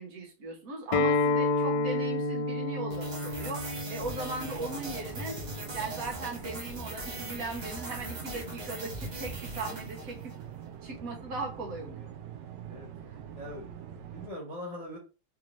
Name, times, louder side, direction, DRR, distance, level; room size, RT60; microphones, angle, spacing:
voice 1, 0.0-5.4 5.7-10.4 10.8-12.1, right 2 dB, 60° right, 1 dB, 1.2 m, -38 dB
Acoustic guitar, 0.9-6.1, left 3 dB, 75° left, 1.1 m, -30 dB
sound 1, 2.9-10.5, right 1 dB, 35° right, 0.7 m, -40 dB
sound 2, 4.4-14.3, right 9 dB, 80° right, 1.2 m, -45 dB
voice 2, 13.4-15.0, left 1 dB, 30° left, -5 dB, 0.7 m, -42 dB
3.5 x 2.7 x 3.1 m, 0.32 s
omnidirectional pair, 1.9 m